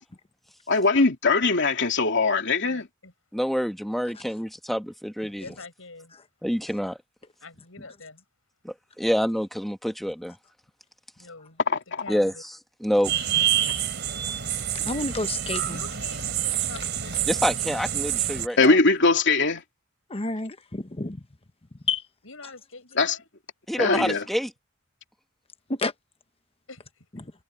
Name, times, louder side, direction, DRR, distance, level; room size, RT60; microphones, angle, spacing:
voice 1, 0.7-2.9 11.7-12.0 18.6-19.6 23.0-23.2 23.8-24.2, left 3 dB, 60° left, 3.0 m, -21 dB
voice 2, 2.6-3.1 5.4-6.2 7.4-8.2 11.2-12.4 15.7-17.5 22.2-23.3 26.7-27.1, left 3 dB, 80° left, 7.5 m, -45 dB
voice 3, 3.3-5.4 6.4-7.0 8.6-10.3 12.1-12.3 12.8-13.1 17.3-18.7 23.7-24.5, equal, ahead, 1.5 m, -27 dB
sound 1, 13.0-18.5, right 10 dB, 60° right, 4.8 m, -27 dB
voice 4, 14.7-15.8 20.1-21.2 21.9-22.0 25.7-25.9 27.1-27.3, left 3 dB, 30° left, 1.2 m, -29 dB
head